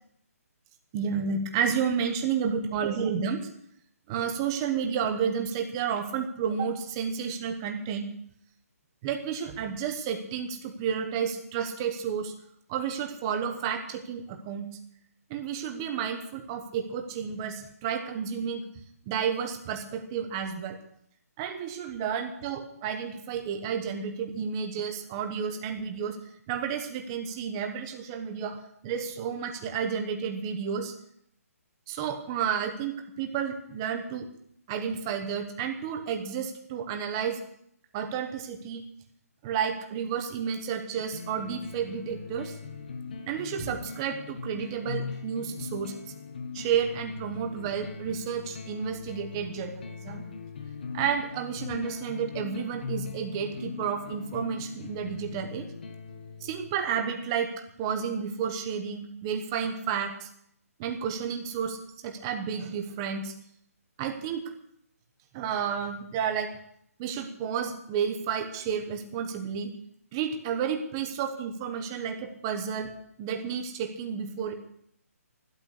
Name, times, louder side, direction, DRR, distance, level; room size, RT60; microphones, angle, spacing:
voice 1, 0.9-3.5 4.1-8.1 9.0-12.3 12.7-14.7 15.3-18.6 19.0-20.8 21.4-26.2 26.5-30.9 31.9-34.3 34.7-37.4 37.9-38.8 39.4-42.5 43.3-46.0 46.5-50.2 50.9-55.7 56.4-57.5 57.8-60.3 60.8-61.8 62.0-63.3 64.0-64.4 65.3-66.5 67.0-69.7 70.1-72.9 73.2-74.5, right 7 dB, 15° right, 5 dB, 1.2 m, -31 dB
sound 1, 41.0-56.9, left 5 dB, 35° left, 1.3 m, -40 dB
15.5 x 12.0 x 6.7 m, 0.70 s
hypercardioid pair, 175°, 8 cm